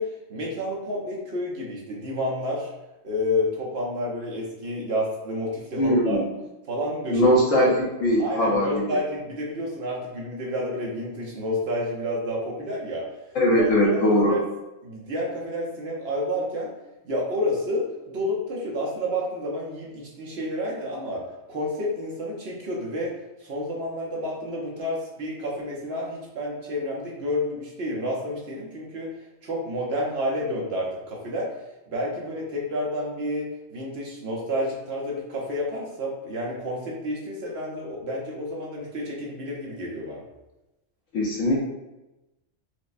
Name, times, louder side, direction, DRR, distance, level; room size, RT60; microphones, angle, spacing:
voice 1, 0.0-2.7 3.0-6.2 6.7-7.3 7.6-7.7 8.2-13.1 13.6-14.4 14.8-16.7 17.0-21.2 21.5-23.1 23.4-29.1 29.4-31.6 31.9-40.2, left 1 dB, 60° right, -3 dB, 0.9 m, -30 dB
voice 2, 5.8-6.2 7.1-9.0 13.3-14.4 41.1-41.6, equal, 75° left, -4 dB, 1.4 m, -21 dB
4.7 x 2.1 x 2.5 m, 0.99 s
omnidirectional pair, 1.3 m